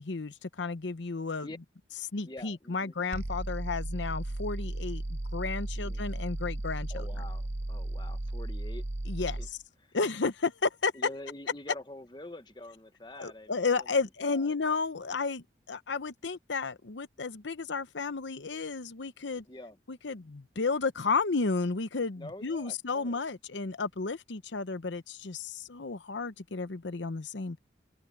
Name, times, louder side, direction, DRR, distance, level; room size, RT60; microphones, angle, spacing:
voice 1, 0.0-1.5 2.1-7.1 9.1-9.4 9.9-10.9 13.2-19.4 19.9-27.6, left 4 dB, 75° left, 0.8 m, -32 dB
voice 2, 2.2-2.9 5.8-6.0 6.9-8.8 9.2-9.5 9.8-10.0 10.9-14.6 19.4-19.8 22.2-23.2, left 1 dB, 25° left, 1.1 m, -46 dB
sound 1, 3.1-9.5, right 1 dB, 35° right, 0.7 m, -35 dB
open air
head